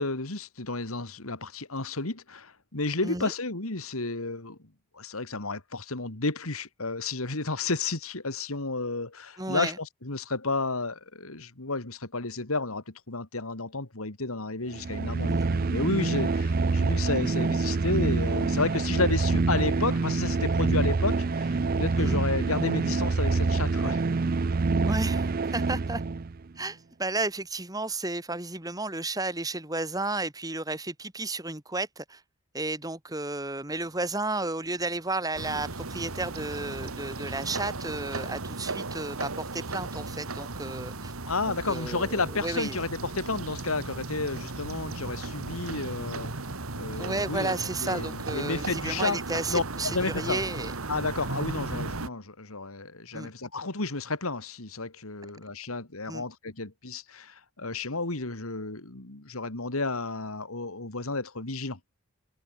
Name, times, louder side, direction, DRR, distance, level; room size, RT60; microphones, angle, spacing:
voice 1, 0.0-4.6 4.9-24.0 41.3-46.3 46.7-47.5 47.8-49.2 49.5-50.4 50.9-61.8, left 3 dB, 85° left, 2.7 m, -32 dB
voice 2, 9.4-9.8 15.3-15.5 22.0-22.2 24.9-26.0 26.6-32.2 32.5-41.1 41.5-42.8 47.0-50.7 51.5-51.6 53.1-53.3 56.1-56.2, right 2 dB, 15° right, 2.7 m, -33 dB
sound 1, 14.7-26.4, right 3 dB, 40° right, 0.5 m, -26 dB
sound 2, 35.3-52.1, right 3 dB, 80° right, 1.9 m, -36 dB
head